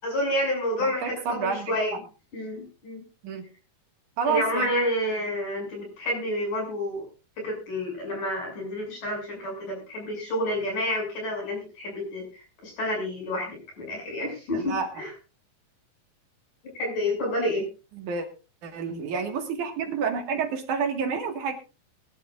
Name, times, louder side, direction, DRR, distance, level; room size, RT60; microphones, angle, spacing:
voice 1, 0.0-1.9 2.3-3.0 4.2-7.1 7.4-15.1 16.8-17.6, left 1 dB, 70° left, 1 dB, 8.3 m, -29 dB
voice 2, 0.8-2.0 3.2-3.4 4.2-4.7 14.5-14.9 18.0-18.3 18.6-21.5, right 6 dB, 65° right, 5 dB, 3.2 m, -29 dB
21.5 x 12.0 x 2.5 m, 0.32 s
omnidirectional pair, 3.9 m